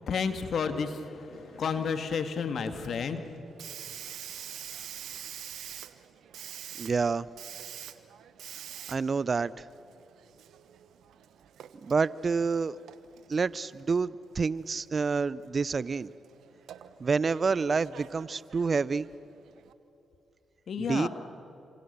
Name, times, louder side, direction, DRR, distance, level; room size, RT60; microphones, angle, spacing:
voice 1, 0.0-3.2 20.7-21.1, left 6 dB, 65° left, 8 dB, 2.1 m, -31 dB
Hiss, 1.3-19.7, right 10 dB, 75° right, 1.1 m, -47 dB
voice 2, 6.8-7.3 8.9-9.6 11.8-12.8 13.3-16.1 17.0-19.1 20.8-21.1, right 4 dB, 50° right, 20 dB, 0.6 m, -28 dB
28.5 x 27.0 x 6.9 m, 2.8 s
hypercardioid pair, 40°, 0 cm